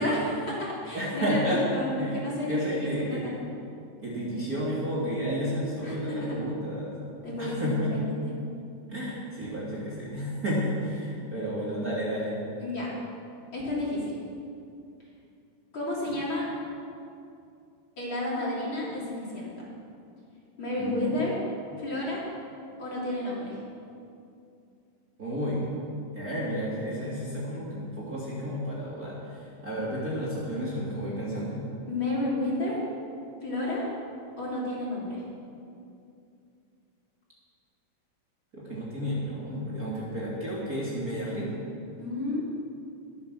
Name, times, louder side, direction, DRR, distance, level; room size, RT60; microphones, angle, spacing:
voice 1, 0.0-2.8 3.1-3.2 5.8-5.9 7.2-8.3 12.6-12.9 13.5-14.1 15.7-16.5 18.0-19.5 20.6-21.3 21.8-22.2 22.8-23.6 31.9-32.8 33.4-33.8 34.4-35.2 42.0-42.4, left 1 dB, 40° left, -6 dB, 3.7 m, -31 dB
voice 2, 0.9-1.7 2.0-2.2 2.5-3.3 4.0-7.0 7.4-7.9 8.9-12.3 16.1-16.2 20.8-21.3 25.2-25.7 26.1-31.6 38.5-41.5, equal, 30° right, -7 dB, 2.6 m, -31 dB
21.0 x 7.9 x 6.2 m, 2.5 s
omnidirectional pair, 3.7 m